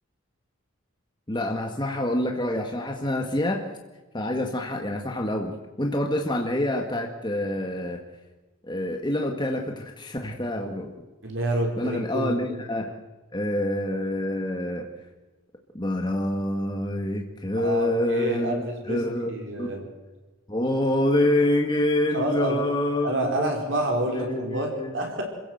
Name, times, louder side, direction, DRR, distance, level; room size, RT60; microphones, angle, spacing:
voice 1, 1.3-3.7 4.1-5.5 5.8-8.0 8.6-10.9 11.8-12.9 13.3-14.9 15.7-19.3 19.6-19.7 20.5-23.5 24.1-25.0, left 1 dB, 20° left, 2 dB, 1.8 m, -26 dB
voice 2, 11.2-12.6 17.6-19.0 19.3-19.8 22.1-22.7 23.0-25.2, right 1 dB, 60° right, 1 dB, 4.8 m, -28 dB
27.5 x 16.0 x 8.0 m, 1.2 s
head